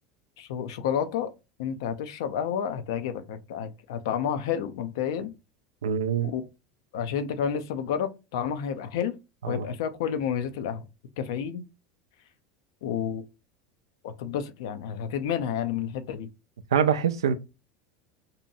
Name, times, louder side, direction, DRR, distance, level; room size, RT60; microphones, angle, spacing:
voice 1, 0.4-1.3 1.6-5.3 6.2-6.5 6.9-9.2 9.5-10.8 11.2-11.6 12.8-13.2 14.0-16.3, left 8 dB, 65° left, 0.4 m, -30 dB
voice 2, 5.8-6.3 9.4-9.6 16.7-17.3, right 7 dB, 75° right, 0.4 m, -24 dB
2.7 x 2.2 x 2.6 m
figure-of-eight pair, 80°, 2 cm